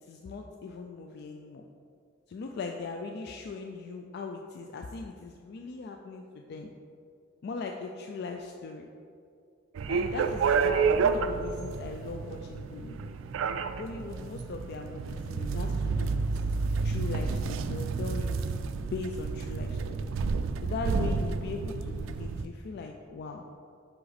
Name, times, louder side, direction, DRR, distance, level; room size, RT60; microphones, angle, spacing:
voice 1, 0.0-1.6 2.3-6.7 7.4-8.9 9.9-13.1 13.8-16.4 16.8-18.4 18.8-20.1 20.6-23.4, left 4 dB, 55° left, 3 dB, 0.3 m, -39 dB
sound 1, 9.7-22.4, right 5 dB, 75° right, 0.3 m, -30 dB
5.6 x 5.0 x 4.1 m, 2.4 s
head